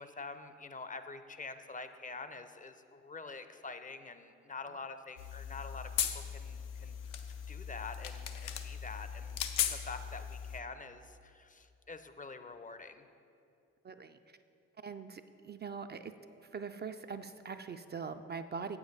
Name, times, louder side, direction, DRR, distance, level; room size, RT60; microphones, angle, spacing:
voice 1, 0.0-7.0 7.5-9.4 9.7-13.1, left 4 dB, 25° left, 10 dB, 0.5 m, -46 dB
sound 1, 5.2-10.6, left 9 dB, 80° left, 0.6 m, -38 dB
voice 2, 13.8-14.2 14.8-16.1 16.5-18.8, right 5 dB, 30° right, 8 dB, 0.4 m, -42 dB
8.2 x 7.2 x 4.0 m, 2.6 s
hypercardioid pair, 40°, 32 cm